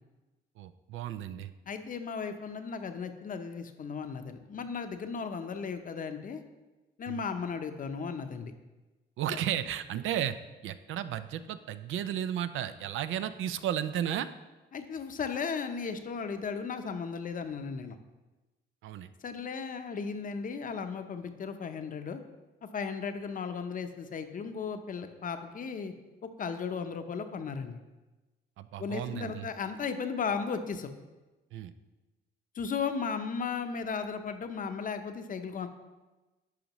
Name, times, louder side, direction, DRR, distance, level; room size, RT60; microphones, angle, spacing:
voice 1, 0.6-1.5 7.1-7.2 9.2-10.4 10.6-14.3 18.8-19.1 28.6-29.5 31.5-31.7, right 10 dB, 80° right, 12 dB, 0.4 m, -34 dB
voice 2, 1.7-6.4 7.0-8.5 14.7-18.0 19.2-22.2 22.7-25.9 26.4-27.8 28.8-30.9 32.5-35.7, left 5 dB, 45° left, 8 dB, 0.7 m, -35 dB
10.5 x 5.0 x 3.0 m, 1.1 s
cardioid pair, 90°, 20 cm